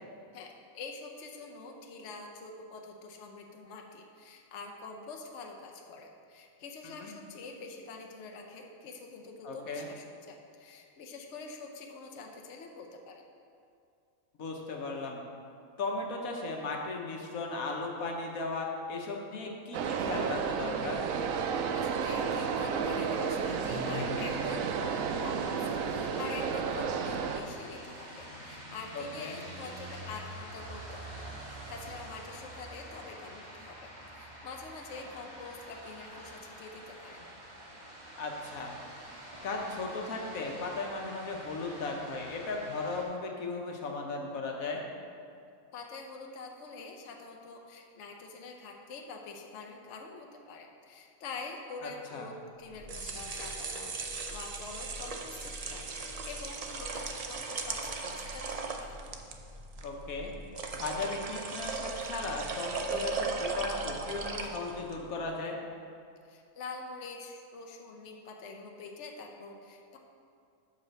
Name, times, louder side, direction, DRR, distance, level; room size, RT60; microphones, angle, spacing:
voice 1, 0.7-13.3 21.7-24.6 25.2-37.3 45.7-59.0 66.2-70.0, left 4 dB, 60° left, 2 dB, 1.0 m, -45 dB
voice 2, 9.4-9.9 14.4-15.2 15.8-21.1 28.9-29.4 38.2-38.7 39.4-44.8 51.8-52.3 59.8-60.3 60.7-65.6, left 3 dB, 85° left, 1 dB, 1.4 m, -36 dB
sound 1, 19.7-27.4, right 6 dB, 80° right, 1.0 m, -32 dB
sound 2, 23.4-43.0, equal, 35° right, 1.4 m, -46 dB
sound 3, 52.7-65.0, right 4 dB, 50° right, 0.4 m, -38 dB
7.4 x 5.0 x 6.6 m, 2.4 s
omnidirectional pair, 1.4 m